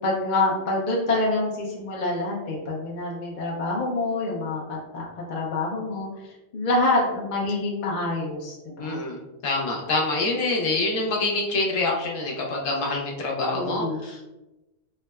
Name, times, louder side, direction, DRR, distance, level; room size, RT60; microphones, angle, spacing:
voice 1, 0.0-6.1 6.5-9.0 13.5-14.0, left 2 dB, 55° left, -3 dB, 0.5 m, -26 dB
voice 2, 8.8-14.3, left 2 dB, 80° left, -1 dB, 1.0 m, -26 dB
3.4 x 2.0 x 2.2 m, 1.0 s
omnidirectional pair, 1.3 m